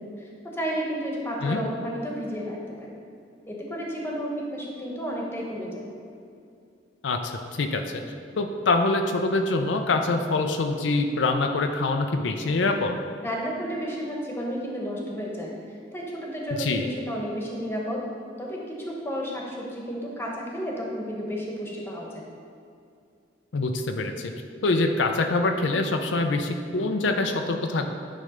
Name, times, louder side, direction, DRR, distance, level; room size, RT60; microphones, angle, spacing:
voice 1, 0.0-3.0 3.5-5.9 13.2-18.1 18.4-22.2, equal, 15° left, -2 dB, 1.1 m, -32 dB
voice 2, 7.0-8.0 8.4-12.9 16.6-16.9 23.5-24.3 24.6-27.9, left 3 dB, 90° left, 5 dB, 0.5 m, -25 dB
9.8 x 3.3 x 5.0 m, 2.5 s
head